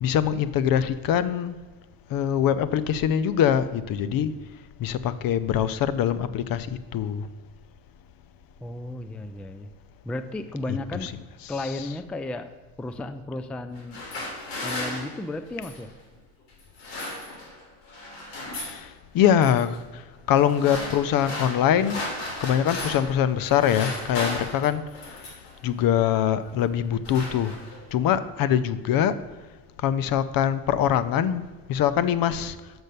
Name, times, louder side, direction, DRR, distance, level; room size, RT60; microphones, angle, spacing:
voice 1, 0.0-1.6 2.1-4.3 4.8-6.7 6.9-7.3 10.7-11.1 18.6-22.0 22.4-24.8 25.3-27.6 27.9-29.2 29.8-31.4 31.7-32.6, left 9 dB, 60° left, 15 dB, 0.7 m, -23 dB
voice 2, 8.6-9.7 10.0-11.1 11.5-14.0 14.6-15.9, left 2 dB, 5° left, 10 dB, 0.3 m, -34 dB
sound 1, 13.7-15.9 16.6-17.6 17.9-18.8 19.2-19.6 20.3-23.2 23.4-25.5 26.3-26.5 26.8-27.9, left 2 dB, 80° left, 3.0 m, -35 dB
6.5 x 6.2 x 6.6 m, 1.3 s
cardioid pair, 110°, 40 cm